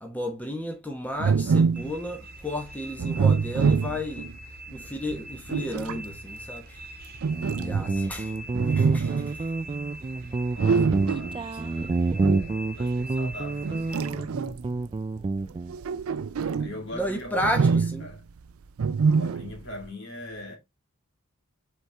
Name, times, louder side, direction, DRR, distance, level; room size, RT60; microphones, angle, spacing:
voice 1, 0.0-4.3 4.7-6.8 7.4-8.3 8.7-9.5 16.9-18.1, equal, 10° left, 1.2 m, -33 dB
sound 1, 1.2-2.0 3.0-4.3 5.1-6.0 7.2-8.1 8.5-9.4 10.6-11.4 12.2-12.5 13.6-14.8 15.6-16.8 17.4-18.2 18.8-19.6, right 5 dB, 90° right, 0.5 m, -25 dB
sound 2, 1.7-14.1, equal, 45° right, 1.3 m, -43 dB
Guitar, 7.3-15.8, right 3 dB, 25° right, 0.3 m, -28 dB
voice 2, 10.5-12.4 12.7-14.3 16.3-18.2 19.1-20.6, left 1 dB, 60° left, 3.0 m, -42 dB
7.9 x 4.4 x 3.4 m
head